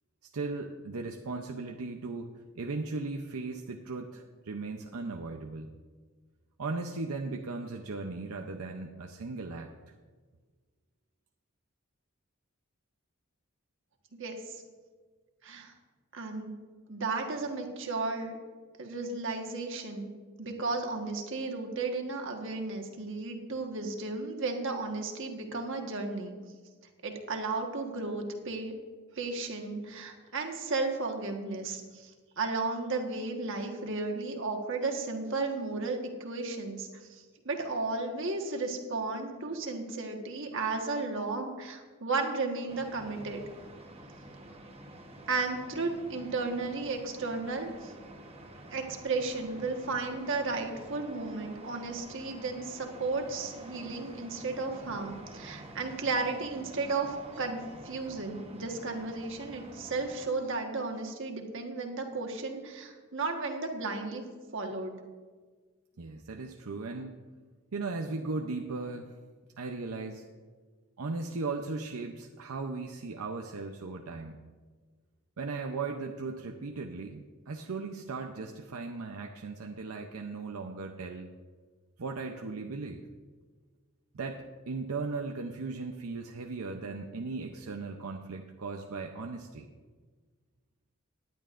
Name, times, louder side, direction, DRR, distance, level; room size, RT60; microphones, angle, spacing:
voice 1, 0.3-5.8 6.6-9.7 66.0-67.1 67.7-69.1 69.6-70.3 71.0-74.4 75.4-81.3 82.0-83.0 84.1-89.7, right 3 dB, 80° right, 3 dB, 0.7 m, -37 dB
voice 2, 14.2-14.6 15.4-15.7 16.1-16.6 16.9-18.4 18.8-20.1 20.4-26.4 27.0-28.7 29.1-32.1 32.4-43.4 45.3-47.9 48.7-64.2 64.5-64.9, right 3 dB, 60° right, 3 dB, 1.4 m, -34 dB
sound 1, 42.7-60.3, right 1 dB, 25° right, 1.1 m, -49 dB
18.5 x 10.5 x 2.5 m, 1.5 s
head